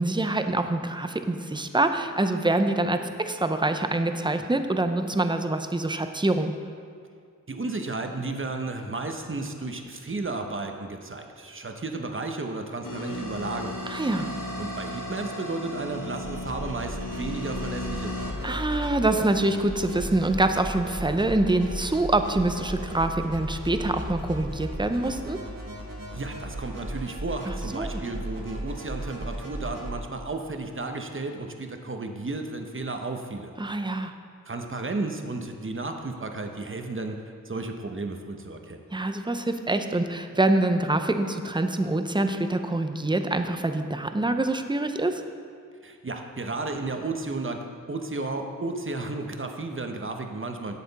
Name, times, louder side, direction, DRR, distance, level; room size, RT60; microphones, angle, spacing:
voice 1, 0.0-6.5 13.9-14.3 18.4-25.4 27.5-28.0 33.6-34.1 38.9-45.2, right 2 dB, 15° right, 7 dB, 0.6 m, -25 dB
voice 2, 7.5-13.9 14.6-18.3 26.1-33.6 34.5-38.8 45.8-50.8, right 3 dB, 40° right, 4 dB, 0.9 m, -33 dB
sound 1, 12.8-19.1, left 1 dB, 70° left, 1.1 m, -35 dB
sound 2, 16.2-29.9, right 1 dB, 80° right, 1.6 m, -36 dB
11.0 x 7.5 x 4.1 m, 2.2 s
wide cardioid pair, 55°, 33 cm